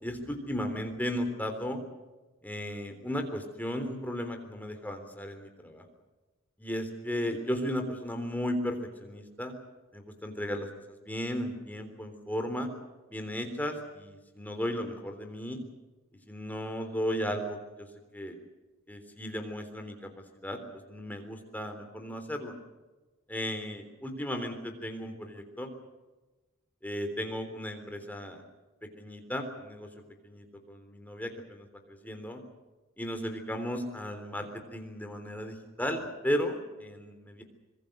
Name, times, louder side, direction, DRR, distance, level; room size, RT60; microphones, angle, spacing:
voice 1, 0.0-1.8 2.4-5.8 6.6-9.5 9.9-12.7 13.1-15.6 16.3-17.9 18.1-18.4 18.9-20.1 20.4-20.6 20.9-22.5 23.3-25.7 26.8-28.4 29.0-29.9 30.2-31.7 32.0-32.4 33.0-37.4, equal, 10° left, 5 dB, 3.5 m, -35 dB
25.5 x 22.5 x 6.7 m, 1.2 s
head